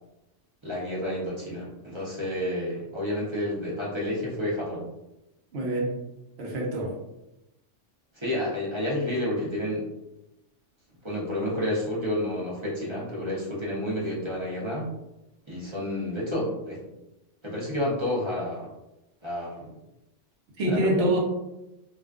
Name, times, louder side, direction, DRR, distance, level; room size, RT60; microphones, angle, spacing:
voice 1, 0.6-4.9 8.1-9.9 11.0-14.9 15.5-16.8 17.4-18.7 19.2-19.7 20.6-20.8, left 1 dB, 35° right, -6 dB, 0.5 m, -30 dB
voice 2, 5.5-5.9 6.4-7.0 20.6-21.2, right 1 dB, 65° right, -2 dB, 0.9 m, -25 dB
2.4 x 2.2 x 2.3 m, 0.94 s
omnidirectional pair, 1.3 m